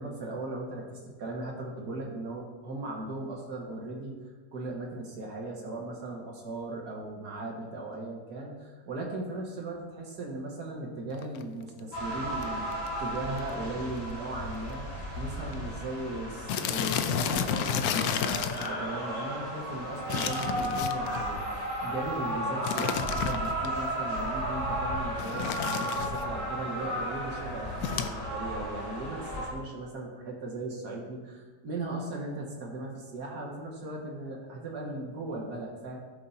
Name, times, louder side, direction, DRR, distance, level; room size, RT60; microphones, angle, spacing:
voice 1, 0.0-4.1 4.5-12.7 13.0-14.8 15.2-36.0, right 2 dB, 65° right, -1 dB, 2.3 m, -38 dB
Paper Bag, 11.1-11.4 12.1-12.2 12.4-12.5 12.7-13.0 13.4-13.5 13.8-13.9 14.7-14.8 15.0-15.2 15.5-15.6 16.5-18.7 20.1-21.3 22.6-23.7 25.2-26.3 27.8-28.1, left 8 dB, 70° left, 1.0 m, -31 dB
sound 1, 11.9-29.5, equal, 35° left, 3.7 m, -34 dB
16.5 x 6.7 x 2.8 m, 1.3 s
omnidirectional pair, 1.9 m